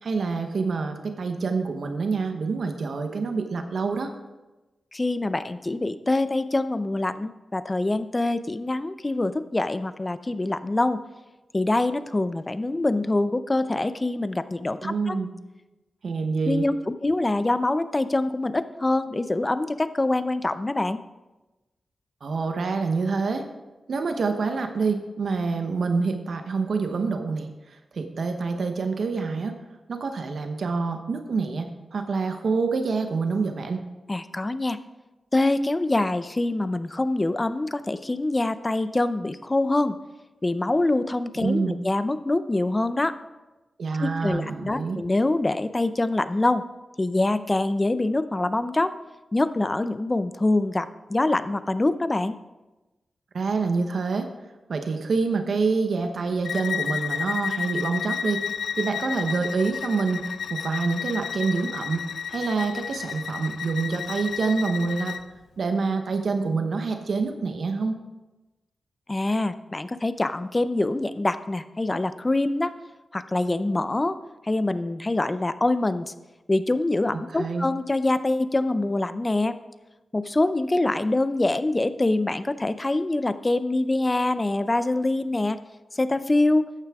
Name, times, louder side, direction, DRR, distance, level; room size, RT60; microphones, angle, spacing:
voice 1, 0.0-4.1 14.8-15.3 16.0-16.7 22.2-23.4 23.9-29.6 29.9-33.8 41.4-41.8 43.8-45.0 53.3-54.3 54.7-58.4 58.8-65.1 65.6-68.0 77.1-77.7, right 4 dB, 70° right, 6 dB, 1.0 m, -27 dB
voice 2, 4.9-11.0 11.5-15.2 16.5-21.0 34.1-34.8 35.3-40.0 40.4-43.2 44.0-46.6 47.0-48.9 49.3-52.4 69.1-72.7 73.1-74.2 74.4-76.1 76.5-79.6 80.1-85.6 85.9-86.7, left 2 dB, 25° left, 12 dB, 0.6 m, -25 dB
Bowed string instrument, 56.4-65.2, left 7 dB, 85° left, 0.3 m, -32 dB
13.5 x 9.4 x 3.6 m, 1.1 s
wide cardioid pair, 85°, 0 cm